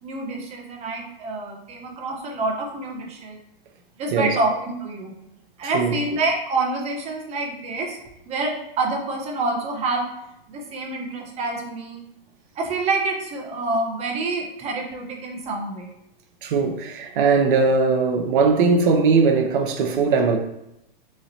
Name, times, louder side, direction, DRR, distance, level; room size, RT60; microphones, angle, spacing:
voice 1, 0.0-3.4 4.0-5.1 5.6-8.0 8.3-10.0 10.5-12.0 12.6-15.9, right 2 dB, 20° right, 0.8 m, -27 dB
voice 2, 5.6-5.9 16.4-20.4, right 4 dB, 60° right, 0.6 m, -19 dB
3.8 x 3.1 x 2.7 m
hypercardioid pair, 130°, 29 cm